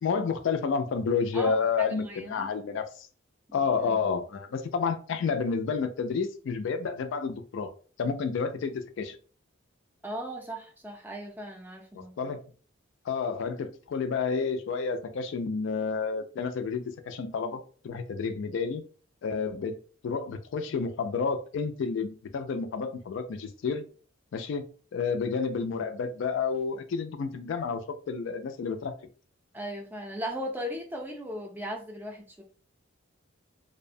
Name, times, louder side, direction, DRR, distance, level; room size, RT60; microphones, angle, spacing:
voice 1, 0.0-3.1 3.5-7.7 8.0-9.2 11.9-12.4 13.1-18.8 19.2-23.9 24.3-24.6 24.9-28.9, left 5 dB, 65° left, 0.3 m, -30 dB
voice 2, 1.9-2.5 3.5-3.6 3.9-4.0 10.0-12.3 29.5-32.4, equal, 10° right, 0.4 m, -37 dB
2.6 x 2.0 x 2.5 m
head